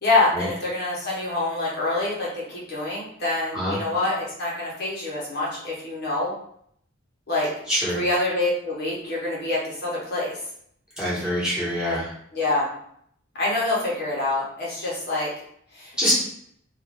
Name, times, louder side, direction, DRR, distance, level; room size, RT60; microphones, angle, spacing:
voice 1, 0.0-6.3 7.3-7.5 7.9-10.4 12.3-12.7 13.3-15.3 15.7-16.1, left 2 dB, 50° left, -6 dB, 0.9 m, -26 dB
voice 2, 7.7-8.0 11.0-12.1 16.0-16.1, equal, 5° right, -10 dB, 1.2 m, -25 dB
2.5 x 2.4 x 3.4 m, 0.68 s
head